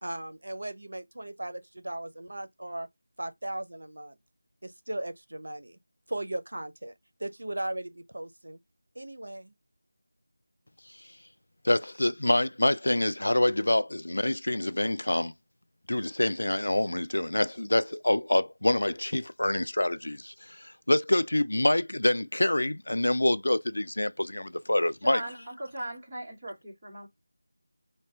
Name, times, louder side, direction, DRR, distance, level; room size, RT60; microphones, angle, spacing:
voice 1, 0.0-2.9 3.2-4.2 4.6-5.8 6.1-6.9 7.2-8.6 8.9-9.5, right 1 dB, 80° right, 0.6 m, -37 dB
voice 2, 11.6-15.3 15.9-25.2, left 1 dB, 85° left, 0.3 m, -26 dB
voice 3, 25.0-27.1, right 1 dB, 15° right, 1.3 m, -38 dB
3.2 x 2.1 x 2.8 m
figure-of-eight pair, 175°, 0 cm